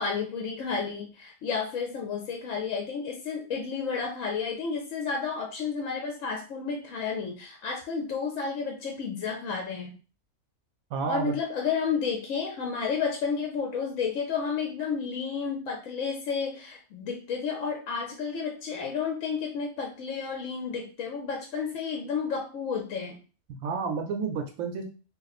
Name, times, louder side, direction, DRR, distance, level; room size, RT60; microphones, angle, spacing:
voice 1, 0.0-9.9 11.1-23.2, left 5 dB, 70° left, 2 dB, 1.0 m, -31 dB
voice 2, 10.9-11.3 23.5-24.8, right 5 dB, 80° right, 4 dB, 1.0 m, -30 dB
3.1 x 2.5 x 4.0 m, 0.35 s
omnidirectional pair, 1.4 m